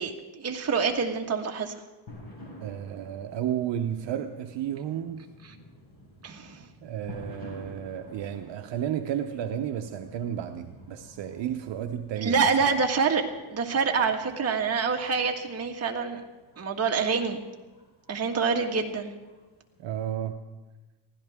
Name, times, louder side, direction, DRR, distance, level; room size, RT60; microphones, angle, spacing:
voice 1, 0.0-1.7 6.2-6.7 12.2-13.2 13.5-16.2 16.6-17.4 18.1-19.1, right 5 dB, 30° right, 1 dB, 1.7 m, -26 dB
sound 1, 2.1-20.1, left 1 dB, 45° left, 5.5 m, -50 dB
voice 2, 2.6-5.2 6.8-12.7 19.8-20.4, right 10 dB, 60° right, 5 dB, 0.9 m, -32 dB
23.0 x 16.0 x 3.6 m, 1.2 s
cardioid pair, 150°, 48 cm